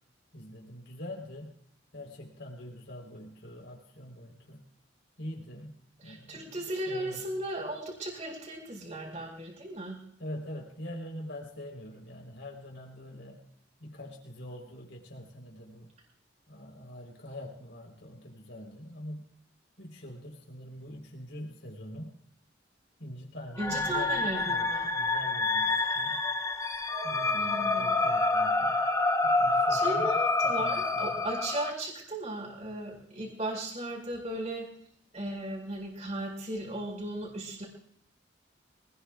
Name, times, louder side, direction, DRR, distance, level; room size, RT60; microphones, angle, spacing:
voice 1, 0.3-1.5 1.9-4.6 5.2-5.8 6.0-6.5 6.9-7.2 10.2-13.4 13.8-15.9 16.5-19.3 19.8-22.1 23.0-26.2 27.0-28.8 29.2-30.0 30.4-31.3, left 1 dB, 75° left, -1 dB, 4.1 m, -44 dB
voice 2, 6.0-10.0 23.6-24.9 27.3-27.9 29.7-34.7 35.1-37.6, right 1 dB, 40° right, 0 dB, 5.1 m, -36 dB
sound 1, 23.6-31.7, left 3 dB, 20° left, 1.0 m, -28 dB
25.0 x 20.0 x 2.5 m, 0.64 s
head